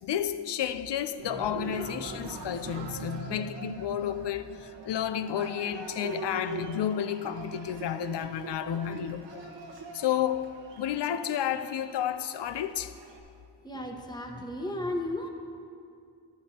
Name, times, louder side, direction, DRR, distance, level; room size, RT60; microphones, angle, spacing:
voice 1, 0.0-9.5 9.9-12.9, left 9 dB, 70° left, 0.6 m, -31 dB
Cheering, 1.2-13.2, right 3 dB, 80° right, 1.3 m, -42 dB
voice 2, 13.6-15.3, left 1 dB, 10° left, 1.1 m, -34 dB
12.5 x 11.5 x 2.9 m
cardioid pair, 80°, 43 cm